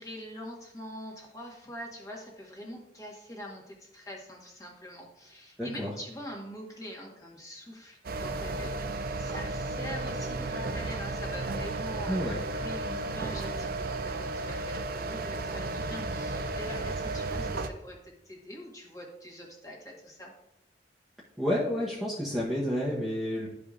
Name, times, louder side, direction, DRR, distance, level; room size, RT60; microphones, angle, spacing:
voice 1, 0.0-12.2 12.5-20.3, equal, 20° left, -1 dB, 1.5 m, -44 dB
voice 2, 5.6-5.9 12.1-12.4 21.4-23.5, equal, ahead, -7 dB, 0.9 m, -30 dB
sound 1, 8.0-17.7, right 2 dB, 55° right, 0.5 m, -33 dB
12.0 x 5.0 x 2.4 m, 0.87 s
head